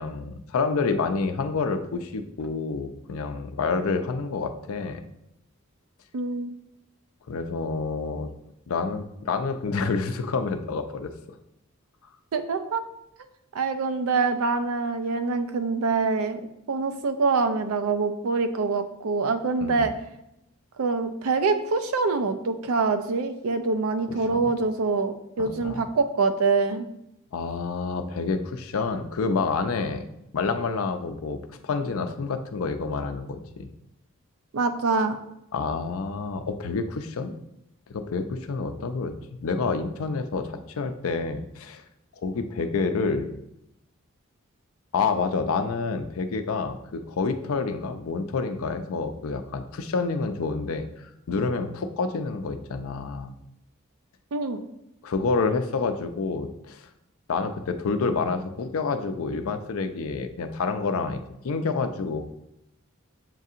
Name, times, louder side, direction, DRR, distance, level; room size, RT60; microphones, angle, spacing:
voice 1, 0.0-5.0 7.3-8.3 8.7-11.1 19.6-19.9 24.3-24.5 25.4-25.8 27.3-30.0 30.3-33.7 35.5-37.4 37.9-41.8 42.2-43.3 44.9-53.3 55.0-56.8 57.3-62.2, left 4 dB, 80° left, 8 dB, 0.4 m, -28 dB
voice 2, 6.1-6.5 12.3-12.8 13.5-16.4 16.7-19.9 20.8-26.9 34.5-35.2 54.3-54.6, right 4 dB, 85° right, 9 dB, 0.5 m, -25 dB
7.3 x 2.7 x 2.5 m, 0.83 s
head